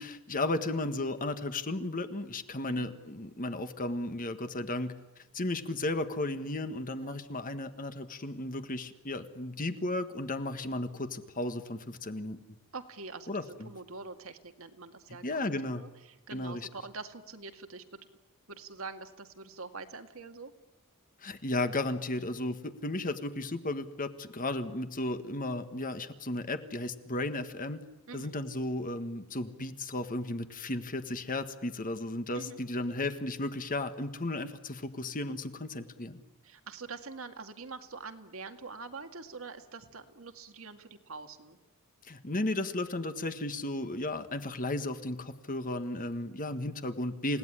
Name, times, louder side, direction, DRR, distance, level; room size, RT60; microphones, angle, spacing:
voice 1, 0.0-4.9 5.3-12.4 13.3-13.7 15.2-15.8 16.3-16.7 21.2-27.8 28.1-36.2 42.1-47.4, left 2 dB, 40° left, 9 dB, 1.6 m, -34 dB
voice 2, 12.7-13.3 13.7-17.8 18.5-20.5 28.1-28.4 32.3-32.6 36.4-41.6 47.3-47.4, right 4 dB, 65° right, 6 dB, 2.0 m, -45 dB
28.5 x 17.5 x 10.0 m, 1.0 s
head